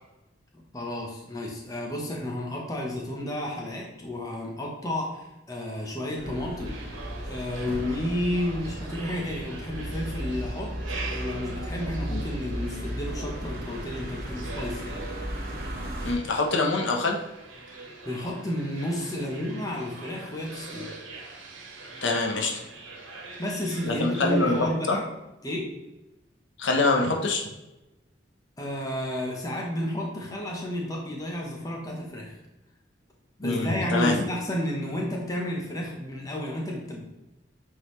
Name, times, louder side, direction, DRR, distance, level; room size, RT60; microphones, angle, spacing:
voice 1, 0.5-6.8 7.2-10.7 11.1-15.0 18.0-20.9 23.4-25.0 25.4-25.7 28.6-32.4 33.4-37.0, left 1 dB, 20° left, -1 dB, 1.0 m, -31 dB
sound 1, 6.1-16.1, equal, 50° right, 1.1 m, -35 dB
sound 2, 6.6-24.7, right 3 dB, 90° right, 1.3 m, -43 dB
voice 2, 16.0-17.2 22.0-22.5 23.8-24.6 24.9-25.0 26.6-27.4 33.4-34.1, left 3 dB, 75° left, 1 dB, 0.9 m, -24 dB
8.1 x 3.9 x 3.2 m, 0.98 s
head